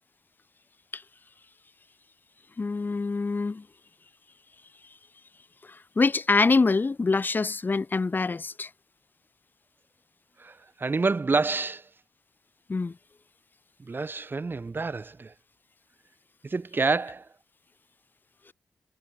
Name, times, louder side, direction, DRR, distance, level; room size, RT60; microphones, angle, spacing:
voice 1, 2.6-3.6 6.0-8.7 12.7-12.9, left 4 dB, 35° left, 0.5 m, -25 dB
voice 2, 10.4-11.9 13.8-15.3 16.4-17.3, right 3 dB, 40° right, 0.9 m, -28 dB
supercardioid pair, 45°, 6 cm